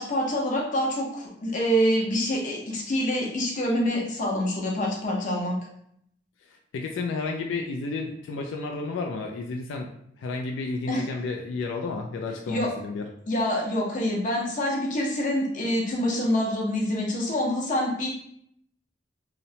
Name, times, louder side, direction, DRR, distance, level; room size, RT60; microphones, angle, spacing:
voice 1, 0.0-5.6 10.9-11.0 12.5-12.7 13.3-18.1, equal, 45° left, -2 dB, 0.6 m, -26 dB
voice 2, 6.5-9.9 10.2-13.1, left 3 dB, 85° left, 2 dB, 0.3 m, -32 dB
2.8 x 2.0 x 2.7 m, 0.70 s
head